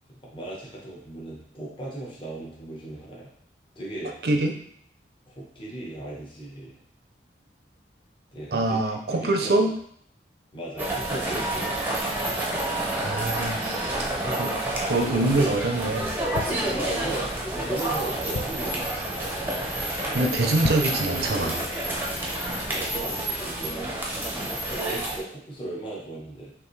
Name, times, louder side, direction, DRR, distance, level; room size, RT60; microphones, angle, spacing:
voice 1, 0.3-3.3 3.7-4.1 5.3-6.8 8.3-9.7 10.5-11.7 14.1-15.6 16.3-18.9 22.1-23.9 24.7-26.5, right 2 dB, 30° left, -4 dB, 1.1 m, -36 dB
voice 2, 4.2-4.5 8.5-9.7 13.0-14.0 14.4-14.5 14.9-16.1 20.1-21.6, right 2 dB, 60° right, 3 dB, 0.6 m, -24 dB
sound 1, 10.8-25.2, right 1 dB, 10° right, 0.7 m, -29 dB
sound 2, 16.3-17.3 17.8-17.9 18.1-18.8 19.3-19.5 19.8-19.9 20.5-21.1 21.5-21.6, left 5 dB, 65° left, 0.3 m, -33 dB
5.4 x 2.6 x 3.2 m, 0.66 s
head